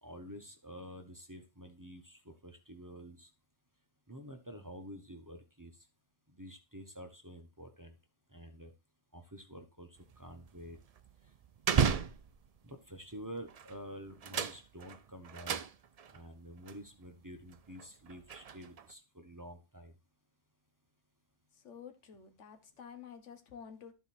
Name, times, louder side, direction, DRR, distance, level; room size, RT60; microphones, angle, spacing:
voice 1, 0.0-3.3 4.1-5.7 6.3-8.0 8.3-8.7 9.1-10.8 11.7-12.0 12.6-15.6 16.1-19.9, equal, 20° right, 0.9 m, -49 dB
sound 1, 10.0-12.7 13.4-13.8 14.1-16.2 16.7-16.8 17.4-18.9, right 7 dB, 50° right, 0.4 m, -35 dB
voice 2, 21.5-23.9, left 7 dB, 85° left, 1.5 m, -50 dB
12.5 x 4.6 x 4.3 m
omnidirectional pair, 1.2 m